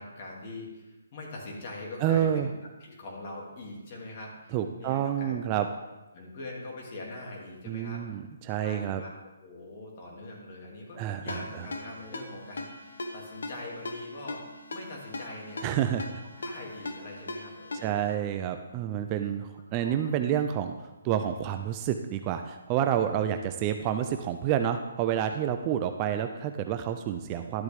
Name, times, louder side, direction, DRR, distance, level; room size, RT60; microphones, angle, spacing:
voice 1, 0.0-2.5 2.8-5.4 6.1-8.2 8.6-9.1 9.4-14.5 14.7-15.7 16.4-18.2 18.8-19.1 19.8-20.1, left 2 dB, 35° left, -2 dB, 2.5 m, -43 dB
voice 2, 2.0-2.5 4.5-5.7 7.7-9.0 11.0-11.4 15.6-16.2 17.8-27.6, right 10 dB, 25° right, 7 dB, 0.4 m, -29 dB
Ringtone, 11.3-18.1, left 2 dB, 80° left, 1.2 m, -40 dB
12.0 x 7.9 x 3.5 m, 1.1 s
hypercardioid pair, 160°, 0 cm